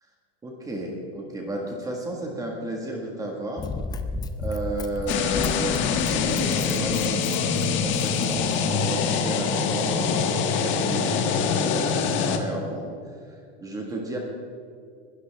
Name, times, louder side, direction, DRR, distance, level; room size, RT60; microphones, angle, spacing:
voice 1, 0.4-3.6 4.4-14.2, right 1 dB, 10° right, 0 dB, 1.6 m, -33 dB
Run, 3.6-8.8 9.4-9.5, left 2 dB, 15° left, 0.5 m, -34 dB
sound 1, 5.1-12.4, left 6 dB, 40° left, 1.3 m, -24 dB
20.5 x 12.5 x 3.5 m, 2.3 s
supercardioid pair, 175°, 31 cm